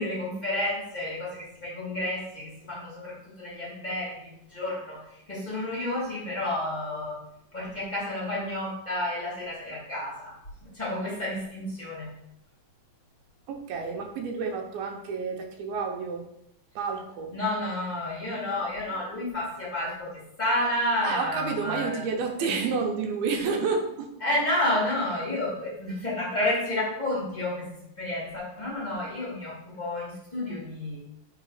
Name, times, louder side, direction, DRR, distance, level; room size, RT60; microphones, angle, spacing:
voice 1, 0.0-7.2 7.5-12.1 17.3-22.0 22.4-22.5 24.2-31.0, left 1 dB, 20° left, -6 dB, 1.2 m, -31 dB
voice 2, 13.5-16.3 16.8-17.3 21.0-24.1, right 5 dB, 85° right, 3 dB, 2.6 m, -30 dB
7.6 x 4.0 x 4.1 m, 0.79 s
omnidirectional pair, 4.3 m